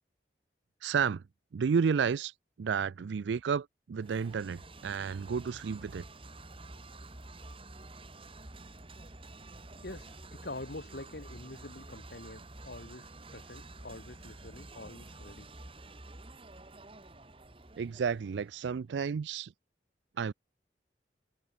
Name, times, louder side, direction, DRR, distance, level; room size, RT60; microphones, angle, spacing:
voice 1, 0.8-1.2 1.5-2.3 2.6-6.0 17.8-19.5 20.2-20.3, right 6 dB, 80° right, 0.4 m, -31 dB
sound 1, 4.0-18.7, right 2 dB, 30° right, 2.2 m, -49 dB
voice 2, 9.8-15.5, left 2 dB, 60° left, 1.8 m, -46 dB
head